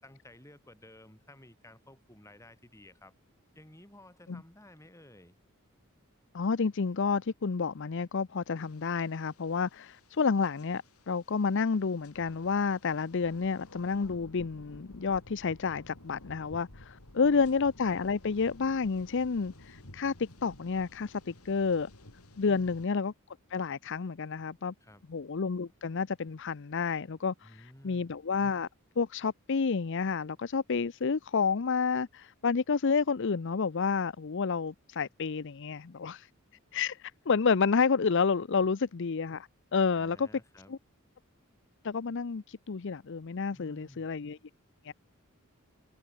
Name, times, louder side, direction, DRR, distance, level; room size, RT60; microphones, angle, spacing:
voice 1, 0.0-3.1 3.5-5.3 17.2-17.4 22.4-22.8 24.8-25.0 27.4-28.1 38.6-38.7 39.9-40.7 43.5-44.1, left 1 dB, 15° left, 5.0 m, -54 dB
voice 2, 6.3-21.9 22.4-23.1 23.5-24.7 25.1-28.7 29.0-36.3 36.7-40.3 40.7-40.8 41.8-44.4 44.8-44.9, left 5 dB, 55° left, 0.6 m, -30 dB
sound 1, 8.6-22.9, left 1 dB, 90° left, 3.6 m, -54 dB
head